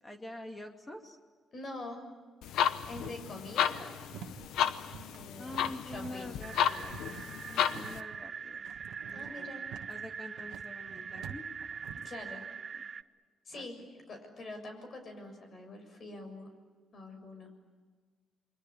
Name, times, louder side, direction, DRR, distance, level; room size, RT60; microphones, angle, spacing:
voice 1, 0.0-1.2 5.4-7.0 7.5-8.7 9.1-11.5 11.9-12.1 12.8-12.9 13.5-13.9, left 1 dB, 20° left, 4 dB, 2.5 m, -46 dB
voice 2, 1.5-2.0 2.9-3.9 5.1-5.6 5.9-6.3 9.1-9.6 12.0-12.4 13.4-13.8 14.1-16.5 16.9-17.5, left 2 dB, 50° left, 6 dB, 6.7 m, -44 dB
sound 1, 2.4-8.0, left 9 dB, 85° left, 0.9 m, -33 dB
sound 2, 2.9-12.1, right 9 dB, 90° right, 1.4 m, -49 dB
sound 3, 6.4-13.0, right 6 dB, 45° right, 0.7 m, -43 dB
28.5 x 23.0 x 8.6 m, 1.4 s
cardioid pair, 90°, 0 cm